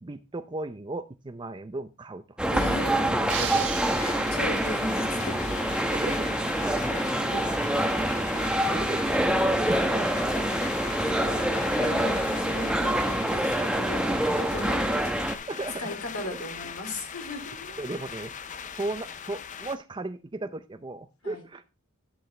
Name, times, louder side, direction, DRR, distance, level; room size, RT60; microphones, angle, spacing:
voice 1, 0.0-2.4 3.4-3.7 5.9-6.3 8.5-10.3 15.5-16.3 17.8-18.3 18.7-21.6, right 2 dB, 20° right, 9 dB, 0.5 m, -36 dB
sound 1, 2.4-15.4, right 1 dB, 5° right, 0.8 m, -26 dB
voice 2, 2.5-3.1 4.0-5.8 6.9-7.0 7.3-7.4 11.0-15.0 15.8-17.7 21.2-21.4, left 2 dB, 75° left, 3 dB, 3.3 m, -38 dB
sound 2, 3.3-4.8, right 8 dB, 60° right, 1.3 m, -36 dB
rain on tinroof, 3.9-19.8, left 7 dB, 35° left, 0.5 m, -39 dB
10.5 x 8.0 x 3.3 m, 0.27 s
head